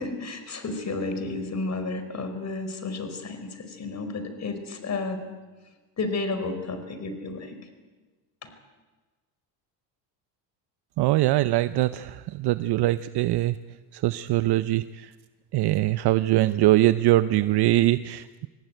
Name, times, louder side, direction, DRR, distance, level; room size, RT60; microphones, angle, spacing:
voice 1, 0.0-5.3 6.0-7.6 8.4-8.5, left 3 dB, 35° left, 9 dB, 4.7 m, -32 dB
voice 2, 11.0-13.6 13.9-15.1 15.5-18.5, right 16 dB, 55° right, 13 dB, 0.8 m, -22 dB
25.5 x 19.0 x 9.2 m, 1.3 s
supercardioid pair, 105°, 48 cm